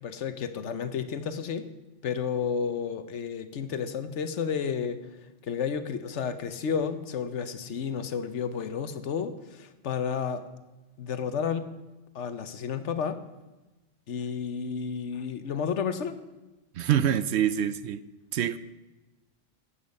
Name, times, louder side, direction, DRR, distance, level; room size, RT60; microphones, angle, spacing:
voice 1, 0.0-1.7 2.0-5.0 5.5-10.4 11.0-11.7 12.1-13.2 14.1-16.2, left 6 dB, 70° left, 1.1 m, -31 dB
voice 2, 16.8-18.0 18.3-18.6, right 9 dB, 70° right, 0.8 m, -25 dB
14.0 x 8.8 x 5.3 m
omnidirectional pair, 1.3 m